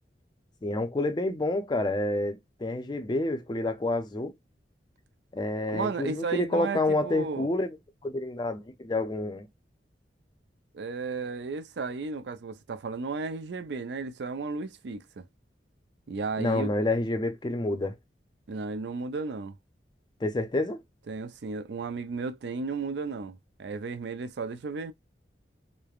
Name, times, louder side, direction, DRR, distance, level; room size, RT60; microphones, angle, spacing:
voice 1, 0.6-4.3 5.3-7.8 8.0-9.5 16.4-17.9 20.2-20.8, left 2 dB, 25° left, 0.5 m, -28 dB
voice 2, 5.7-7.5 10.7-15.2 16.1-16.7 18.5-19.5 21.1-24.9, right 4 dB, 70° right, 0.4 m, -34 dB
3.2 x 2.1 x 2.3 m
head